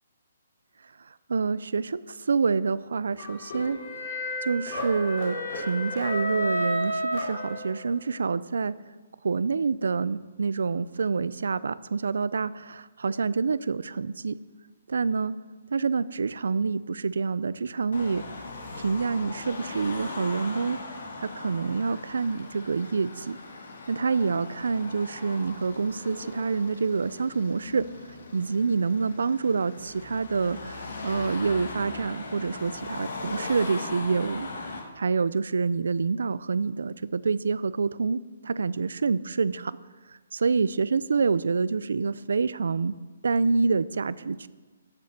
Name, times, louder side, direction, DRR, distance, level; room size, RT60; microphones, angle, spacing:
voice 1, 1.3-8.8 9.2-14.4 14.9-15.3 15.7-18.3 18.8-20.8 21.2-23.4 23.9-34.5 35.0-39.8 40.3-43.0 43.2-44.5, right 4 dB, 85° right, 17 dB, 0.5 m, -27 dB
sound 1, 3.2-8.0, left 1 dB, 40° left, 4.0 m, -31 dB
Car passing by / Traffic noise roadway noise / Engine, 17.9-34.8, left 3 dB, 65° left, 2.6 m, -39 dB
14.0 x 6.8 x 6.6 m, 1.3 s
hypercardioid pair, 175°, 0 cm